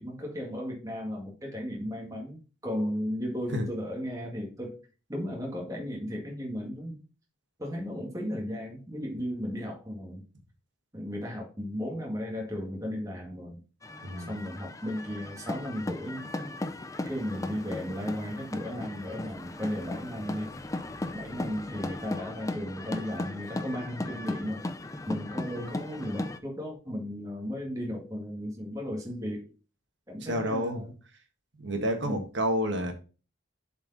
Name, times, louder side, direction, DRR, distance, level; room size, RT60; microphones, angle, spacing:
voice 1, 0.0-4.8 5.1-7.0 7.6-10.2 10.9-13.6 14.3-16.3 17.1-20.5 21.1-24.7 25.1-29.5 30.1-30.9 32.1-32.3, equal, 15° right, -1 dB, 1.8 m, -35 dB
sound 1, 13.8-26.4, left 2 dB, 15° left, 0.4 m, -37 dB
voice 2, 14.0-14.3 30.3-30.8 31.6-32.9, equal, 60° right, 5 dB, 1.5 m, -29 dB
7.6 x 4.6 x 4.0 m, 0.34 s
head